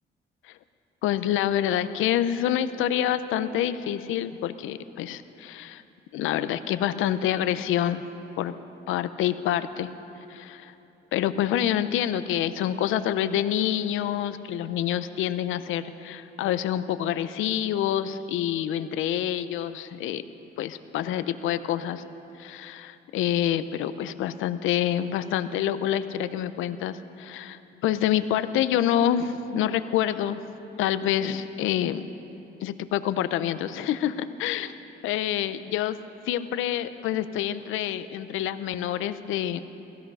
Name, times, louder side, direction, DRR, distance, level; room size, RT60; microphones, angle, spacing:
voice 1, 1.0-5.8 6.1-8.0 8.4-8.6 8.9-9.9 10.3-10.7 11.1-20.2 20.6-22.0 22.4-30.4 30.8-32.1 32.6-34.7 35.0-39.6, left 11 dB, 90° left, 12 dB, 0.7 m, -27 dB
17.0 x 15.5 x 5.5 m, 3.0 s
cardioid pair, 90°, 20 cm